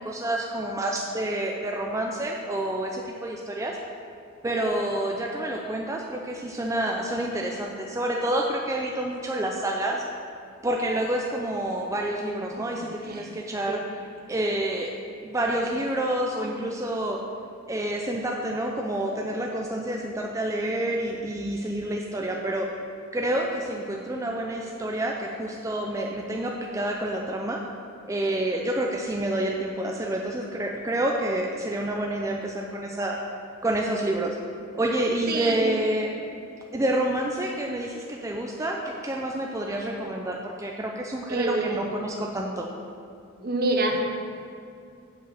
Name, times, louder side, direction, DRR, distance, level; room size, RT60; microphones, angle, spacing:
voice 1, 0.0-3.8 4.4-10.0 10.6-14.0 14.3-14.9 15.2-17.2 17.7-22.7 23.1-27.6 28.1-33.2 33.6-34.4 34.7-36.1 36.7-42.7, right 1 dB, 15° right, 0 dB, 0.4 m, -28 dB
voice 2, 12.6-13.3 13.7-13.8 35.3-35.8 41.3-41.9 43.4-44.0, right 2 dB, 45° right, 3 dB, 0.8 m, -28 dB
7.4 x 5.0 x 6.5 m, 2.4 s
head